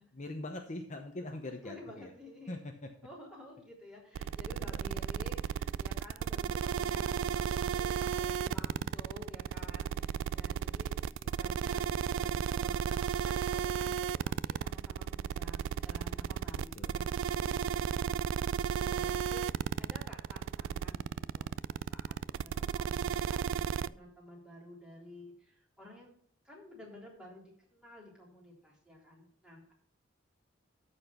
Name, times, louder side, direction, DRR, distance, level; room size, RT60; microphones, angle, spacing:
voice 1, 0.1-2.1 2.5-2.9 4.5-5.0 11.4-11.6 16.5-17.0 18.0-18.2 18.7-19.0, left 2 dB, 40° left, 4 dB, 0.8 m, -43 dB
voice 2, 1.6-2.6 3.0-10.9 11.2-17.8 18.2-26.1 26.4-29.7, left 1 dB, 5° right, -4 dB, 3.5 m, -52 dB
sound 1, 4.1-23.9, right 8 dB, 80° right, 0.3 m, -34 dB
13.0 x 4.4 x 5.8 m, 0.63 s
head